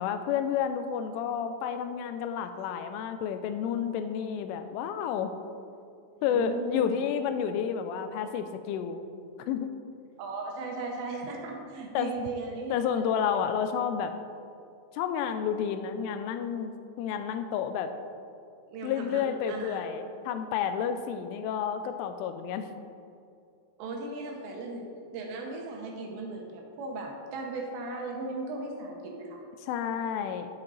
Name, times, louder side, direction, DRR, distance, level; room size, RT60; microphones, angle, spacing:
voice 1, 0.0-5.4 6.2-9.0 9.5-9.7 11.9-12.1 12.7-14.1 14.9-17.9 18.8-22.7 29.6-30.5, left 8 dB, 85° left, 9 dB, 3.0 m, -30 dB
voice 2, 6.1-6.9 10.2-13.1 18.7-19.8 23.8-29.4, right 3 dB, 75° right, 1 dB, 2.9 m, -37 dB
9.8 x 8.6 x 4.1 m, 2.5 s
omnidirectional pair, 5.6 m